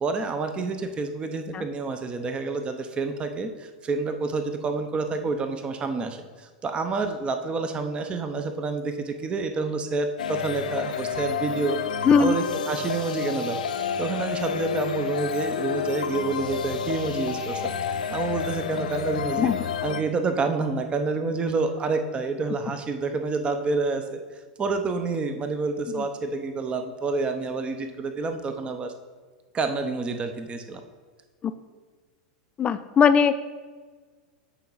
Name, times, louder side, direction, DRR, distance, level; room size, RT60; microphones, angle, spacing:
voice 1, 0.0-13.6 14.0-19.5 19.8-24.2 24.6-28.9 29.5-30.8, right 3 dB, 25° right, 7 dB, 0.7 m, -28 dB
sound 1, 10.2-20.0, left 7 dB, 90° left, 0.6 m, -30 dB
voice 2, 12.0-12.3 19.4-19.7 26.0-26.1 31.4-31.5 32.6-33.4, left 6 dB, 25° left, 12 dB, 0.4 m, -20 dB
8.2 x 4.6 x 4.0 m, 1.4 s
hypercardioid pair, 105°, 4 cm